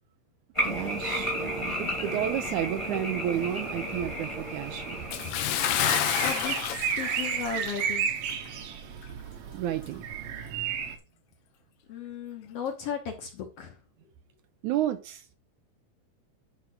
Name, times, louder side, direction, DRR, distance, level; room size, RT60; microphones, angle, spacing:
sound 1, 0.5-6.6, equal, 15° left, 1.2 m, -33 dB
voice 1, 0.6-5.2 9.5-10.0 14.6-15.4, right 11 dB, 75° right, 2.0 m, -31 dB
sound 2, 3.3-11.0, right 7 dB, 60° right, 1.9 m, -34 dB
Bathtub (filling or washing) / Splash splatter, 5.1-8.0 8.3-8.5 9.0-9.1, left 11 dB, 85° left, 2.5 m, -29 dB
voice 2, 6.2-8.1 11.9-13.7, left 7 dB, 60° left, 1.8 m, -36 dB
10.5 x 3.6 x 6.0 m
omnidirectional pair, 3.9 m